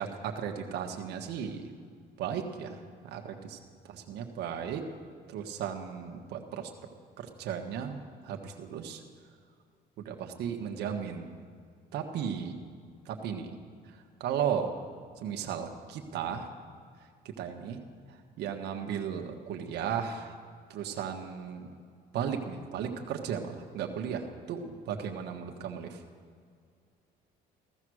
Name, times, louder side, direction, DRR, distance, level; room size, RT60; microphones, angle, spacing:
voice 1, 0.0-1.7 2.2-2.8 3.0-3.6 3.8-4.8 5.3-6.7 7.2-9.0 10.0-11.3 11.9-12.6 13.0-13.5 14.2-14.7 15.2-16.5 17.2-17.8 18.4-20.3 20.7-21.7 22.1-26.0, right 8 dB, 75° right, 3 dB, 1.6 m, -35 dB
15.5 x 14.5 x 6.4 m, 2.2 s
cardioid pair, 110°, 17 cm